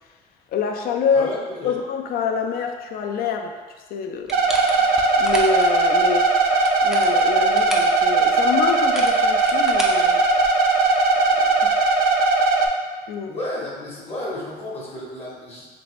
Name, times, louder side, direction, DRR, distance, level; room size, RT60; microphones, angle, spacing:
voice 1, 0.5-1.3 1.6-3.6 3.9-4.4 4.8-6.4 6.8-10.2 11.6-11.8 13.1-13.4, left 6 dB, 60° left, 4 dB, 0.4 m, -26 dB
voice 2, 1.1-1.8 13.3-15.7, left 1 dB, 35° left, -5 dB, 0.8 m, -32 dB
sound 1, 4.3-5.7 6.5-8.0 8.7-10.7, equal, ahead, 0.4 m, -33 dB
sound 2, 4.3-12.7, right 3 dB, 65° right, 0.4 m, -18 dB
3.2 x 2.6 x 3.0 m, 1.4 s
cardioid pair, 110°, 17 cm